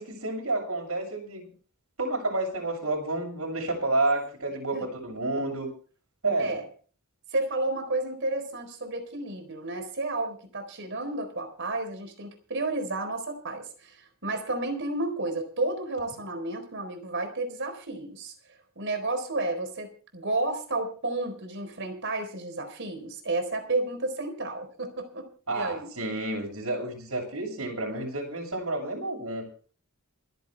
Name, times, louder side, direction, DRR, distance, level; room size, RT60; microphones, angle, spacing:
voice 1, 0.0-1.5 2.0-5.7 6.2-6.6 25.5-29.5, right 2 dB, 80° right, 1 dB, 7.2 m, -30 dB
voice 2, 7.3-18.3 18.8-25.9, right 2 dB, 60° right, 7 dB, 4.2 m, -31 dB
27.5 x 9.5 x 3.4 m, 0.40 s
head